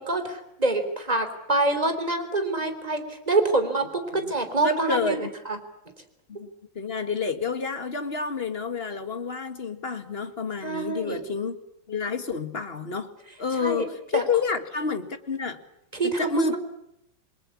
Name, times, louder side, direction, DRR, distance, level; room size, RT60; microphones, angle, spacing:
voice 1, 0.0-5.6 10.6-11.3 13.6-13.9 14.1-14.2 15.9-16.6, right 2 dB, 20° right, 7 dB, 3.7 m, -26 dB
voice 2, 4.6-5.3 6.3-6.5 6.8-11.6 11.9-13.1 13.4-15.6 16.0-16.6, left 5 dB, 35° left, 8 dB, 2.0 m, -29 dB
29.0 x 22.5 x 8.5 m, 0.80 s
omnidirectional pair, 2.0 m